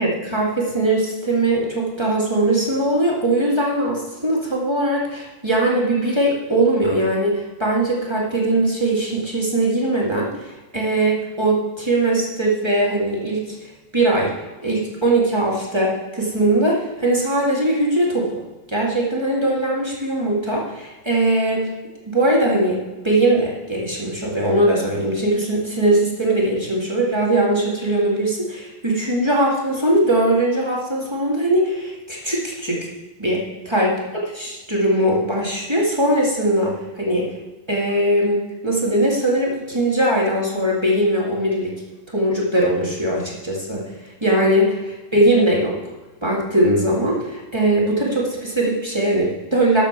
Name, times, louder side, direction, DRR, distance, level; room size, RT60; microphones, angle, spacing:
voice 1, 0.0-14.3 14.6-18.4 18.7-21.7 22.1-32.9 33.2-37.4 37.7-41.7 42.1-45.9 46.2-49.8, right 1 dB, 10° right, -4 dB, 1.8 m, -20 dB
13.0 x 7.0 x 6.0 m, 1.1 s
omnidirectional pair, 4.2 m